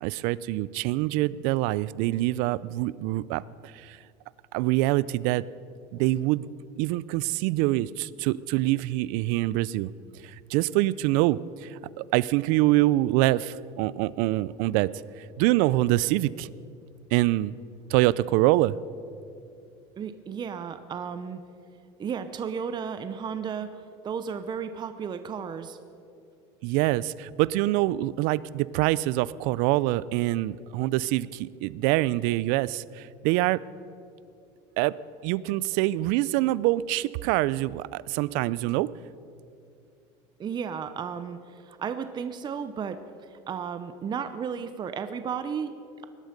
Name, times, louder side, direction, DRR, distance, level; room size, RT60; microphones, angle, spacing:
voice 1, 0.0-4.0 4.5-5.4 5.9-6.5 6.8-9.9 10.2-14.9 15.2-16.5 17.1-17.5 17.9-18.8 26.6-33.6 34.8-34.9 35.2-38.9, right 17 dB, 70° right, 20 dB, 0.4 m, -25 dB
voice 2, 20.0-21.4 22.0-25.8 40.4-43.0 43.3-46.0, right 7 dB, 30° right, 10 dB, 0.7 m, -34 dB
19.5 x 12.0 x 5.2 m, 2.6 s
supercardioid pair, 115°, 15 cm